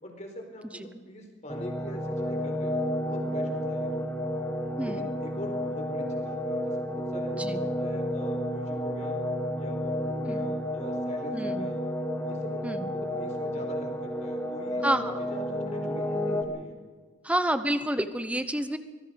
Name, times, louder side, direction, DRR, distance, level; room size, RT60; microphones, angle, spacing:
voice 1, 0.0-4.0 4.8-9.2 9.6-11.8 12.2-14.9 15.2-16.8, equal, 35° left, 4 dB, 4.4 m, -43 dB
sound 1, 1.5-16.4, equal, 10° left, 2.1 m, -31 dB
voice 2, 4.8-5.1 7.3-7.6 10.3-10.5 11.3-11.7 12.6-12.9 14.8-15.2 17.2-18.8, right 1 dB, 5° right, 11 dB, 1.0 m, -29 dB
24.5 x 21.0 x 5.3 m, 1.4 s
head